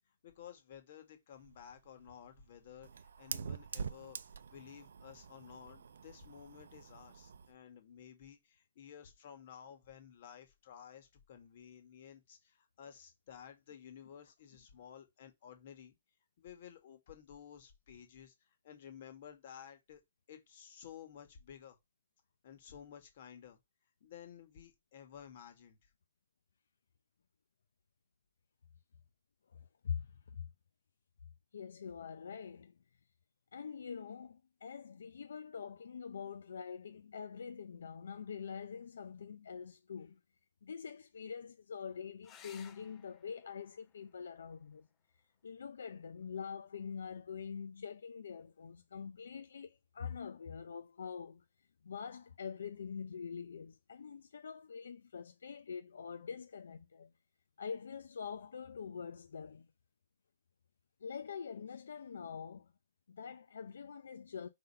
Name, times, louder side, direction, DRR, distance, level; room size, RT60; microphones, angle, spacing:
voice 1, 0.2-16.0 16.4-20.0 20.3-21.8 22.4-23.6 24.0-25.9, left 8 dB, 50° left, 1.8 m, -54 dB
Fire, 1.3-7.5, right 6 dB, 85° right, 0.5 m, -46 dB
voice 2, 29.5-30.5 31.5-32.8 33.5-40.2 40.6-44.9 45.4-51.4 51.8-57.1 57.6-59.7 61.0-62.7 63.1-64.5, left 6 dB, 85° left, 0.6 m, -45 dB
sound 1, 42.2-47.3 49.1-49.8 53.2-53.3 53.7-53.8, left 8 dB, 20° left, 0.7 m, -63 dB
5.2 x 3.9 x 5.5 m
hypercardioid pair, 160°, 0 cm